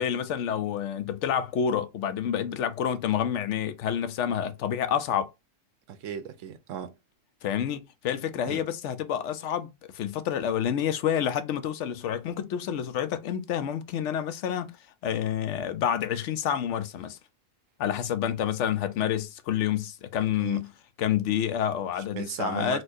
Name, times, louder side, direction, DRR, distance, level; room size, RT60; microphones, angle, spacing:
voice 1, 0.0-5.3 7.4-14.8 15.0-17.2 17.8-20.7 21.0-22.8, left 9 dB, 70° left, 0.9 m, -28 dB
voice 2, 5.9-7.0 8.4-8.6 20.4-20.6 22.1-22.8, right 9 dB, 85° right, 1.0 m, -36 dB
4.2 x 2.4 x 2.6 m
omnidirectional pair, 1.3 m